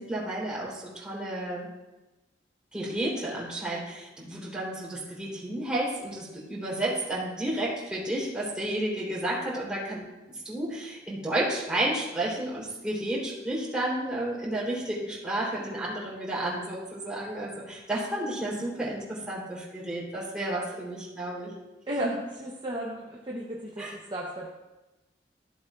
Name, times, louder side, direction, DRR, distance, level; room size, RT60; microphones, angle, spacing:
voice 1, 0.0-1.7 2.7-10.1 10.4-21.5 23.8-23.9, right 1 dB, 5° right, -7 dB, 3.7 m, -31 dB
voice 2, 22.4-24.5, right 1 dB, 30° right, -3 dB, 1.0 m, -34 dB
14.5 x 7.9 x 2.5 m, 1.1 s
head